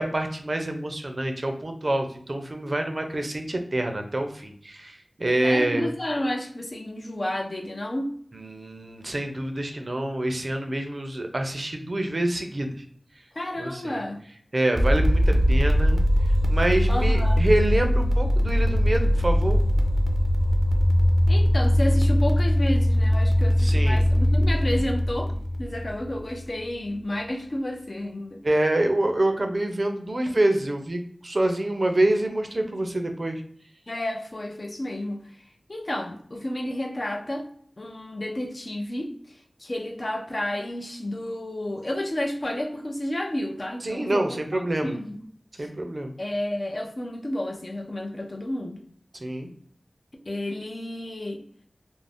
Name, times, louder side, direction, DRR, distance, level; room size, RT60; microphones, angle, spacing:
voice 1, 0.0-5.9 8.3-12.8 13.2-13.3 13.6-14.0 14.5-16.0 16.5-19.6 23.6-24.0 28.4-33.4 43.8-45.0 45.6-46.1 49.1-49.5, right 1 dB, 55° right, 4 dB, 0.5 m, -26 dB
voice 2, 5.4-8.1 13.3-14.2 16.9-17.4 21.3-25.3 25.6-28.4 33.9-35.2 35.7-37.5 37.8-44.2 44.5-45.2 45.6-45.7 46.2-48.8 50.3-51.4, left 1 dB, 50° left, 3 dB, 0.5 m, -31 dB
sound 1, 14.7-26.5, equal, ahead, 0.5 m, -21 dB
2.5 x 2.0 x 3.3 m, 0.62 s
wide cardioid pair, 45°, 0 cm